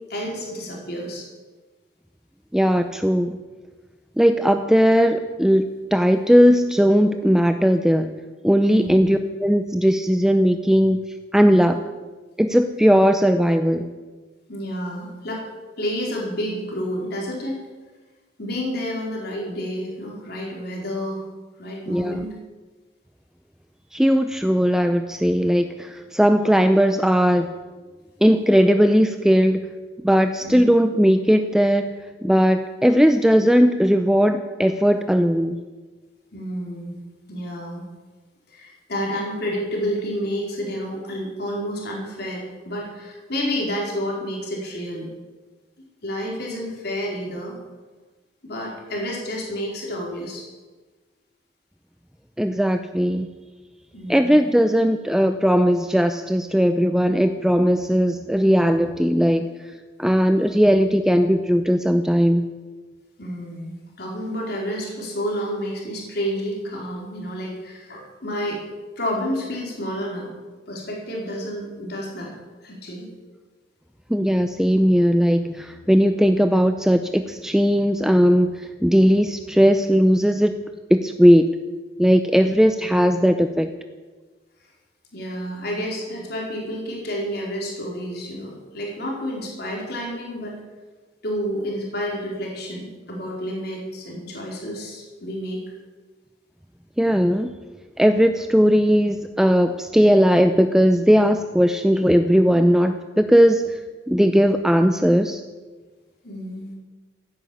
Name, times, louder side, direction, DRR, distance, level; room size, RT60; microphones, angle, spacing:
voice 1, 0.1-1.2 8.6-8.9 14.5-15.5 15.8-17.6 18.4-21.2 21.6-22.3 30.4-30.6 36.3-37.0 37.3-37.8 38.5-45.1 46.0-47.5 48.4-50.5 53.9-54.4 63.2-68.6 69.0-70.3 70.7-72.3 72.6-73.1 82.4-82.5 85.1-90.6 91.2-95.6 106.2-106.7, equal, 65° left, -2 dB, 4.6 m, -30 dB
voice 2, 2.5-3.4 4.2-8.1 8.4-11.0 11.3-11.8 12.4-13.9 21.9-22.3 23.9-27.6 28.2-29.7 30.0-31.9 32.2-35.6 52.4-53.3 54.1-59.5 60.0-62.5 74.1-80.6 80.9-81.5 82.0-83.7 97.0-97.5 98.0-103.8 104.1-105.4, equal, 5° right, 7 dB, 0.6 m, -18 dB
15.0 x 11.0 x 8.6 m, 1.3 s
head